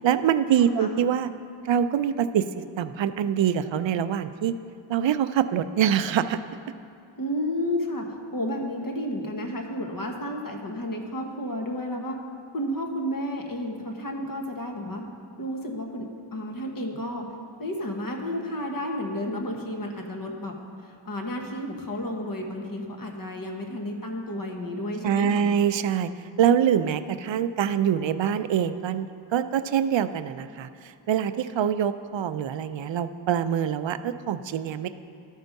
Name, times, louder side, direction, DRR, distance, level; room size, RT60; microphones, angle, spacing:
voice 1, 0.0-1.3 1.6-2.5 2.8-4.5 4.9-6.4 25.0-26.1 26.4-29.1 29.3-30.7 31.1-34.9, right 9 dB, 70° right, 11 dB, 0.5 m, -24 dB
voice 2, 0.6-1.0 7.1-12.2 12.5-15.0 15.4-17.3 17.6-25.6, left 1 dB, 45° left, 2 dB, 1.3 m, -32 dB
13.0 x 4.5 x 5.3 m, 2.4 s
cardioid pair, 45°, 47 cm